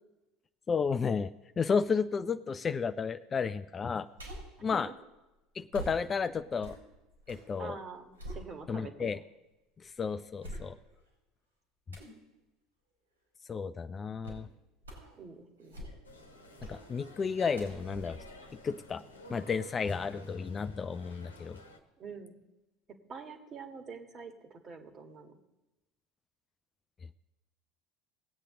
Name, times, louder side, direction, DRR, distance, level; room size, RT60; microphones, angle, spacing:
voice 1, 0.7-4.1 4.6-4.9 5.6-6.8 7.3-7.8 8.7-9.2 10.0-10.8 13.5-14.5 16.7-18.2 18.6-19.0 19.3-21.6, left 5 dB, 30° left, 12 dB, 0.4 m, -32 dB
sound 1, 4.2-4.6 5.7-7.5 7.9-9.0 9.5-9.6 10.4-11.1 11.9-12.2 14.2-14.5 14.8-15.2 15.6-16.2 16.6-16.9 17.5-19.2 19.6-19.7, equal, 90° right, 4.0 m, -46 dB
voice 2, 7.6-9.1 15.2-15.9 22.0-22.3 23.1-25.4, right 5 dB, 35° right, 6 dB, 1.8 m, -46 dB
sound 2, 16.0-21.8, left 1 dB, 90° left, 1.1 m, -53 dB
19.5 x 8.3 x 3.8 m, 1.0 s
figure-of-eight pair, 70°, 0 cm